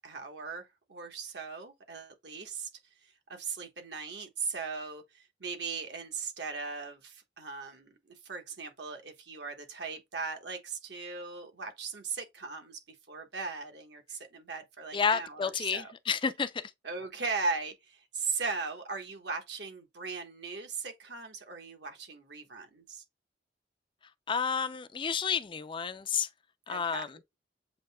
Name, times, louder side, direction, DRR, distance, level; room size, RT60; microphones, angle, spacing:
voice 1, 0.0-2.7 3.0-15.9 16.8-23.0 26.7-27.0, right 4 dB, 70° right, 1.3 m, -38 dB
voice 2, 14.9-16.7 24.3-26.3 26.7-27.2, left 6 dB, 30° left, 0.4 m, -31 dB
7.7 x 2.8 x 2.2 m
head